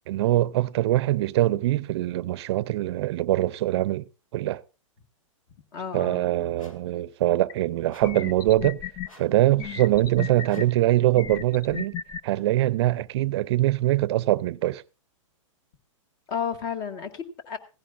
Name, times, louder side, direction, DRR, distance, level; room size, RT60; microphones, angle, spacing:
voice 1, 0.0-4.0 4.3-4.6 5.9-8.8 9.2-11.9 12.2-14.8, right 15 dB, 55° right, 0.5 m, -23 dB
voice 2, 5.7-6.3 16.3-17.6, left 7 dB, 45° left, 1.9 m, -32 dB
sound 1, 6.6-6.9 7.9-8.3 9.0-9.4 10.5-10.8, left 2 dB, 80° left, 2.1 m, -53 dB
sound 2, 7.5-7.6 8.0-9.1 9.6-10.6 11.1-12.2, left 8 dB, 20° left, 0.6 m, -35 dB
17.0 x 15.0 x 2.5 m
hypercardioid pair, 120°, 17 cm